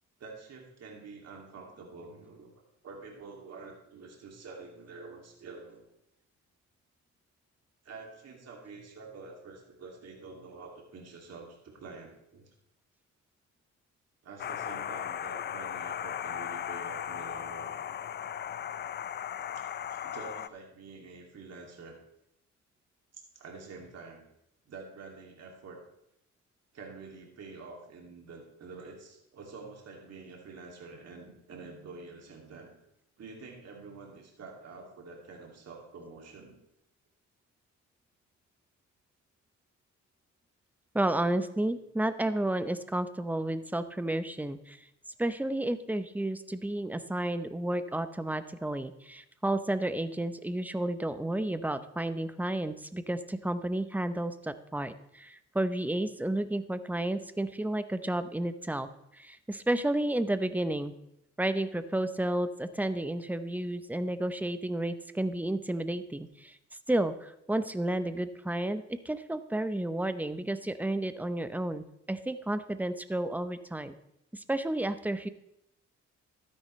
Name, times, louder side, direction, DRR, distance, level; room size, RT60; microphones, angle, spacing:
voice 1, 0.2-2.5 2.8-5.8 7.8-12.5 14.2-17.8 19.5-22.0 23.1-24.3 24.7-25.8 26.7-32.7 33.2-36.6 41.7-41.8, right 4 dB, 55° right, 0 dB, 2.5 m, -47 dB
sound 1, 14.4-20.5, left 9 dB, 35° left, 0.4 m, -37 dB
voice 2, 40.9-44.8 45.2-58.9 59.1-60.9 61.4-66.6 66.9-73.9 74.3-75.3, right 1 dB, 5° right, 12 dB, 0.7 m, -31 dB
12.5 x 9.8 x 3.2 m, 0.80 s
cardioid pair, 90°, 30 cm